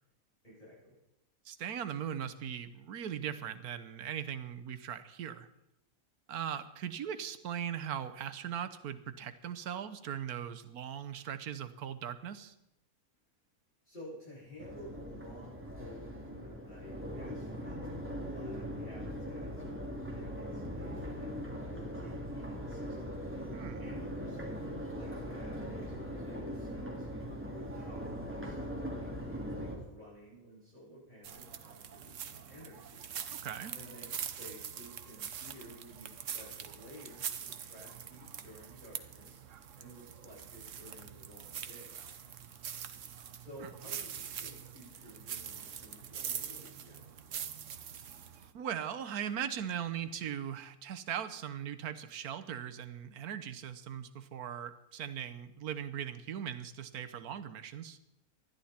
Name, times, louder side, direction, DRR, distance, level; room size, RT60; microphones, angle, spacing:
voice 1, 0.4-1.0 13.8-21.4 21.7-27.1 27.4-33.1 33.7-39.4 39.8-41.9 43.4-47.3, equal, 30° left, -8 dB, 7.8 m, -53 dB
voice 2, 1.4-5.5 6.3-12.5 23.5-23.8 33.4-33.7 43.6-43.7 48.5-58.0, right 9 dB, 85° right, 11 dB, 1.4 m, -39 dB
Crowd, 14.6-29.7, equal, 10° right, 2.8 m, -40 dB
sound 1, 31.2-48.5, right 8 dB, 60° right, 1.2 m, -44 dB
20.0 x 13.0 x 4.3 m, 0.86 s
omnidirectional pair, 1.6 m